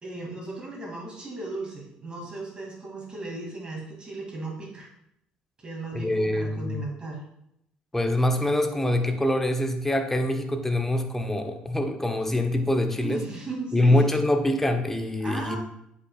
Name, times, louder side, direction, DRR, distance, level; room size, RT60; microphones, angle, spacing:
voice 1, 0.0-4.9 5.6-7.2 13.0-14.1 15.2-15.6, right 2 dB, 30° right, -2 dB, 2.5 m, -36 dB
voice 2, 5.9-6.8 7.9-13.2 13.7-15.6, left 1 dB, 10° left, 5 dB, 0.9 m, -24 dB
8.4 x 5.7 x 2.4 m, 0.78 s
supercardioid pair, 75°, 3 cm